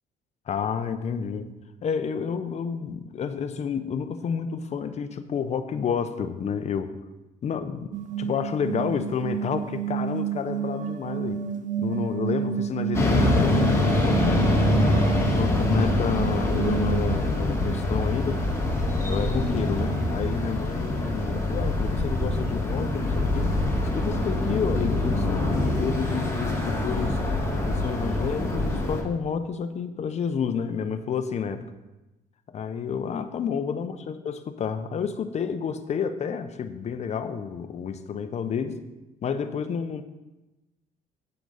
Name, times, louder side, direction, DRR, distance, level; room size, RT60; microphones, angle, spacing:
voice 1, 0.5-1.5 1.8-6.9 7.4-7.9 8.2-11.4 11.8-14.4 15.4-18.4 19.0-23.6 23.9-27.2 27.6-31.6 32.5-38.8 39.2-40.0, left 6 dB, 40° left, 10 dB, 0.7 m, -30 dB
sound 1, 7.9-17.2, right 8 dB, 50° right, 0.5 m, -30 dB
sound 2, 12.9-29.0, left 1 dB, 15° left, 1.7 m, -24 dB
8.3 x 7.9 x 4.0 m, 1.0 s
cardioid pair, 110°, 17 cm